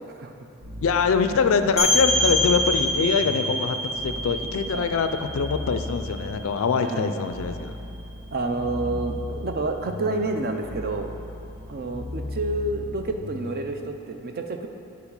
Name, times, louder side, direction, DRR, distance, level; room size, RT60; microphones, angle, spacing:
sound 1, 0.6-13.9, left 2 dB, 60° right, 1.3 m, -37 dB
voice 1, 0.8-7.7 8.8-9.0, left 5 dB, 65° left, 9 dB, 0.4 m, -24 dB
sound 2, 1.8-7.2, left 1 dB, 5° right, 1.2 m, -26 dB
voice 2, 6.8-7.1 8.3-11.1 11.7-14.7, right 2 dB, 40° right, 5 dB, 0.4 m, -29 dB
7.1 x 4.8 x 5.3 m, 2.7 s
head